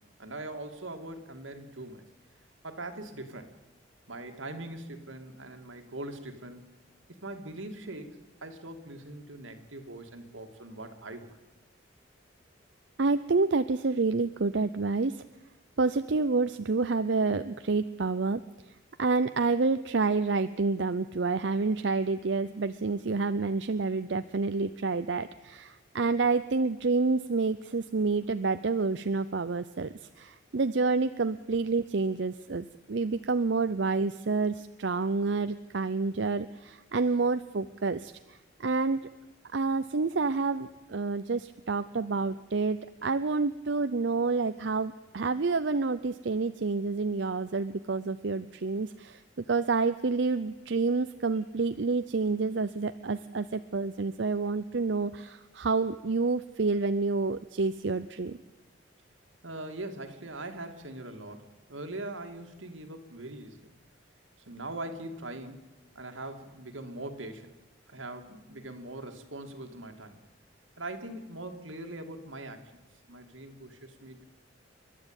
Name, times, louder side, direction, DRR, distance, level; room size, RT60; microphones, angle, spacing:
voice 1, 0.0-2.0 2.6-3.5 4.1-6.7 7.2-8.1 8.4-11.4 59.4-63.7 64.5-67.5 67.9-70.2 70.8-74.2, right 2 dB, 90° right, 5 dB, 2.5 m, -41 dB
voice 2, 13.0-15.2 15.8-18.4 19.0-39.0 39.5-49.2 49.5-58.4, right 3 dB, 65° right, 11 dB, 0.6 m, -28 dB
29.5 x 12.0 x 9.0 m, 1.1 s
head